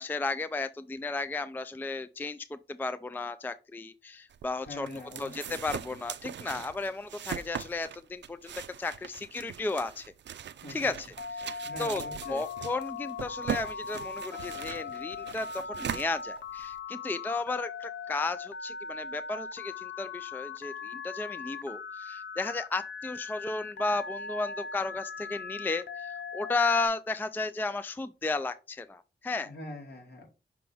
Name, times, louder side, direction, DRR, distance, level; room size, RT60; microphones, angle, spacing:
voice 1, 0.0-8.5 8.8-10.1 10.7-29.5, left 3 dB, 10° left, 0.3 m, -34 dB
sound 1, 4.3-16.8, right 9 dB, 80° right, 0.4 m, -41 dB
voice 2, 4.7-5.6 10.6-10.9 11.6-12.4 29.4-30.2, left 2 dB, 65° left, 2.9 m, -43 dB
Telephone, 11.2-26.9, left 5 dB, 85° left, 0.7 m, -39 dB
5.9 x 4.6 x 3.8 m
wide cardioid pair, 90°, 18 cm